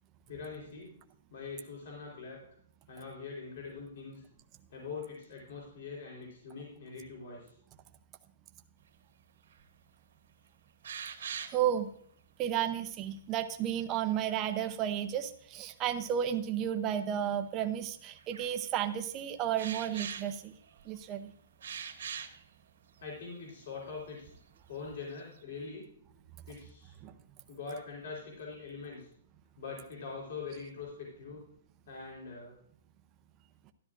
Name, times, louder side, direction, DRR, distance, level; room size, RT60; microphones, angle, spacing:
voice 1, 0.3-0.9 1.3-2.4 2.9-4.2 4.7-7.5 23.0-24.3 24.7-25.9 26.5-26.9 27.5-29.1 29.6-31.4 31.9-32.5, left 4 dB, 50° left, -2 dB, 3.8 m, -43 dB
sound 1, 9.5-9.6 10.1-10.2 10.8-11.8 13.9-14.7 15.9-16.0 16.9-17.0 18.2-18.5 19.6-21.0 21.6-22.4 23.1-23.2 23.5-23.6 24.0-24.5 24.8-25.4, right 8 dB, 65° right, 1.5 m, -42 dB
voice 2, 11.5-11.9 12.4-20.5 20.9-21.3 27.0-27.1, right 10 dB, 20° right, 8 dB, 0.6 m, -32 dB
13.0 x 12.0 x 2.5 m, 0.64 s
hypercardioid pair, 175°, 0 cm